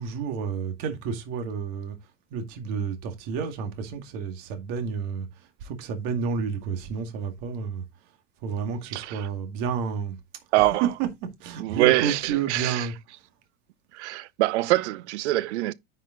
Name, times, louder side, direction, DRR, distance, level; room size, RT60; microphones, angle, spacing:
voice 1, 0.0-2.0 2.3-5.3 5.6-7.8 8.4-10.1 10.6-12.9, right 6 dB, 40° right, 2.0 m, -30 dB
voice 2, 8.9-9.3 10.5-10.8 11.6-12.9 13.9-15.7, right 17 dB, 65° right, 0.7 m, -24 dB
10.0 x 5.5 x 3.8 m
supercardioid pair, 170°, 37 cm